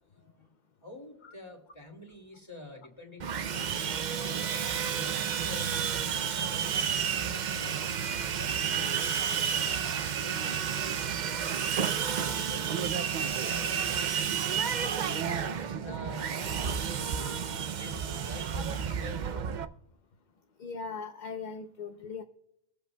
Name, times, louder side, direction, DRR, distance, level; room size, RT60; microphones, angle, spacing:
voice 1, 0.2-0.5 0.8-3.9 4.3-5.7 6.3-7.9 8.3-12.8 13.2-14.7 15.4-17.4 17.8-19.2, left 1 dB, 25° left, 2 dB, 2.4 m, -48 dB
Sawing, 3.2-19.6, right 7 dB, 55° right, 0.6 m, -31 dB
voice 2, 20.6-22.2, left 5 dB, 50° left, 5 dB, 0.7 m, -40 dB
23.5 x 7.9 x 2.2 m, 0.78 s
omnidirectional pair, 1.2 m